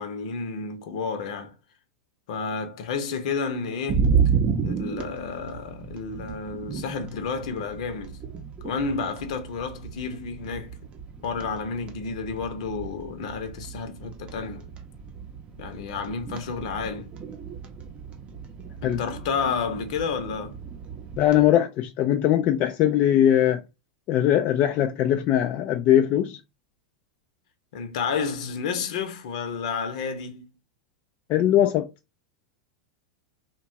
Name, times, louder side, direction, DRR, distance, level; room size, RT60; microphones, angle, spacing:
voice 1, 0.0-1.5 2.3-4.1 4.6-8.2 8.6-10.8 11.2-14.7 15.6-17.1 18.8-20.6 27.7-30.4, left 5 dB, 70° left, 0.8 m, -31 dB
sound 1, 3.9-21.5, right 6 dB, 30° right, 0.6 m, -32 dB
voice 2, 21.2-23.6 24.1-26.4 31.3-31.9, left 11 dB, 45° left, 0.3 m, -21 dB
2.8 x 2.3 x 2.6 m
hypercardioid pair, 110°, 4 cm